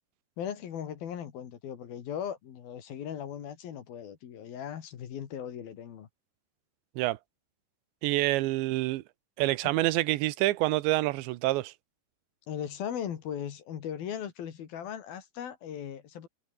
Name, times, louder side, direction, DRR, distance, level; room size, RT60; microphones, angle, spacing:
voice 1, 0.4-6.1 12.5-16.3, left 9 dB, 60° left, 3.8 m, -38 dB
voice 2, 8.0-9.0 9.4-11.7, right 18 dB, 85° right, 3.2 m, -27 dB
omnidirectional pair, 5.1 m